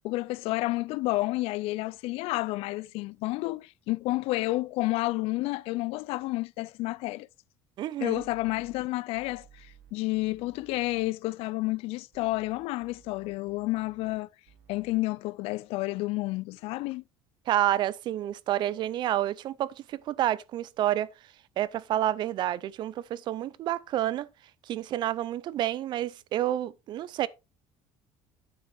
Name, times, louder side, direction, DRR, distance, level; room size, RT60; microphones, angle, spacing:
voice 1, 0.0-7.3 8.0-14.3 14.7-17.0, left 20 dB, 60° left, 0.4 m, -30 dB
voice 2, 7.8-8.2 17.5-21.1 21.6-24.3 24.7-27.3, right 13 dB, 45° right, 0.5 m, -29 dB
sound 1, 8.1-8.9 9.1-11.1 12.1-14.2 14.5-15.0, right 9 dB, 80° right, 2.5 m, -58 dB
9.6 x 7.0 x 3.4 m
cardioid pair, 165°, 11 cm